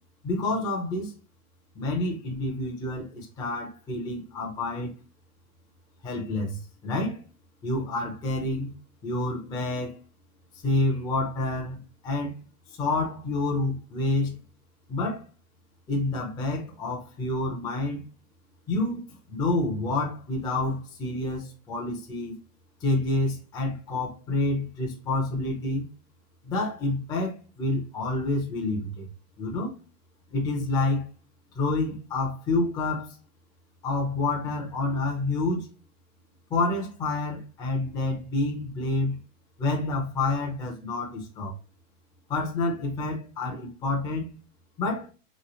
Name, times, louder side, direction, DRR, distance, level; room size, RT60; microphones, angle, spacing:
voice 1, 0.2-1.1 1.8-4.9 6.0-7.2 7.6-8.7 9.0-10.0 10.6-12.4 12.7-14.4 14.9-15.3 15.9-18.1 18.7-22.3 22.8-25.9 26.4-29.1 29.4-29.7 30.3-31.1 31.5-33.2 33.8-35.7 36.5-39.2 39.6-41.5 42.3-44.3 44.8-45.1, left 2 dB, 10° left, 0.5 m, -28 dB
3.2 x 3.1 x 2.9 m
hypercardioid pair, 135°, 45 cm